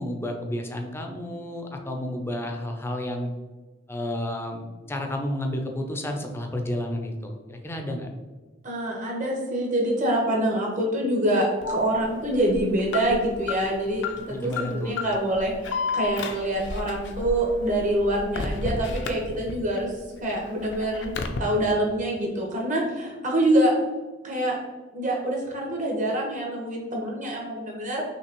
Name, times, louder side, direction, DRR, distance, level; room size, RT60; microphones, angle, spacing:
voice 1, 0.0-3.3 3.9-8.1 14.3-14.9, left 1 dB, 10° left, 3 dB, 0.5 m, -31 dB
voice 2, 8.6-19.9 20.2-21.1 21.4-23.7 24.2-24.6 24.9-28.0, right 1 dB, 40° right, -2 dB, 1.2 m, -25 dB
Alarm, 11.6-19.8 20.2-21.4, left 3 dB, 65° left, 0.5 m, -32 dB
5.8 x 2.8 x 3.0 m, 1.3 s
head